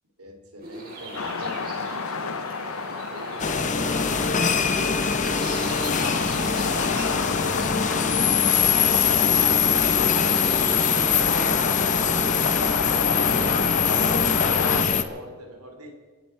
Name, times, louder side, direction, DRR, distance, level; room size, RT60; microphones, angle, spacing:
voice 1, 0.2-2.4 3.1-5.6 6.5-13.3 13.6-14.6 14.8-15.9, right 1 dB, 85° right, 3 dB, 3.3 m, -43 dB
sound 1, 0.6-15.0, right 1 dB, 45° right, 4.7 m, -38 dB
sound 2, 1.1-14.8, left 5 dB, 70° left, 0.8 m, -30 dB
sound 3, 3.4-15.0, left 7 dB, 35° left, 0.8 m, -23 dB
29.5 x 10.0 x 4.6 m, 1.5 s
head